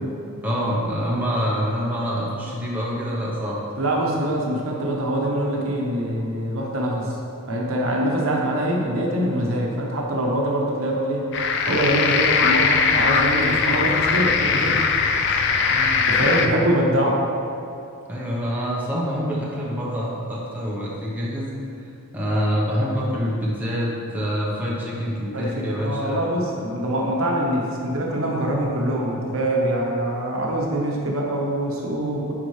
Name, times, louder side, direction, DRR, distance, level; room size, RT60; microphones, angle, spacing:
voice 1, 0.4-3.6 15.7-16.0 18.1-21.5 21.8-26.2, equal, 10° right, -6 dB, 1.0 m, -26 dB
voice 2, 3.8-7.2 7.5-11.3 11.6-14.8 16.1-17.2 25.3-32.3, right 1 dB, 65° right, -2 dB, 1.0 m, -24 dB
sound 1, 11.3-16.5, left 5 dB, 55° left, 0.4 m, -20 dB
9.9 x 4.6 x 3.3 m, 2.7 s
head